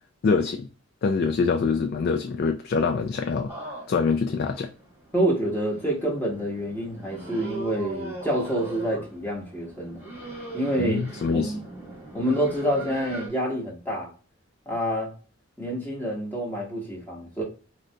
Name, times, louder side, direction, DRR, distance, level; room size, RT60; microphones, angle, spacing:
voice 1, 0.2-0.7 1.0-3.5 3.9-4.7 10.8-11.5, left 4 dB, 50° left, 0.3 m, -24 dB
sound 1, 3.5-13.3, right 1 dB, 10° right, 1.1 m, -40 dB
voice 2, 5.1-10.1 10.5-11.0 11.3-11.6 12.1-14.1 14.7-15.1 15.6-17.4, right 1 dB, 10° left, 0.9 m, -27 dB
3.8 x 2.2 x 2.7 m
head